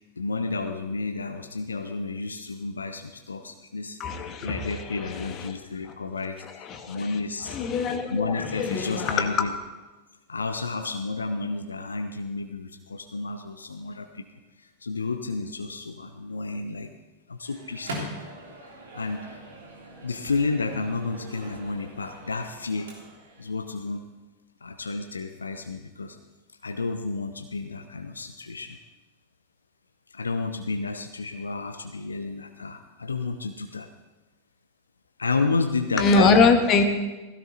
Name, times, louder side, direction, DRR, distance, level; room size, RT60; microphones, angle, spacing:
voice 1, 0.2-4.0 4.4-7.6 8.1-9.5 10.3-14.2 14.6-16.9 17.3-18.1 18.9-19.4 20.0-22.9 23.4-24.1 24.6-26.2 26.6-28.8 30.1-33.9 35.2-36.5, left 3 dB, 75° left, 7 dB, 0.8 m, -31 dB
voice 2, 4.0-5.5 6.4-7.2 7.5-9.5 36.0-36.8, left 4 dB, 35° left, 7 dB, 1.7 m, -23 dB
Microwave oven, 17.4-23.4, right 1 dB, 65° right, 3.4 m, -41 dB
17.0 x 16.0 x 4.1 m, 1.1 s
figure-of-eight pair, 90°, 0 cm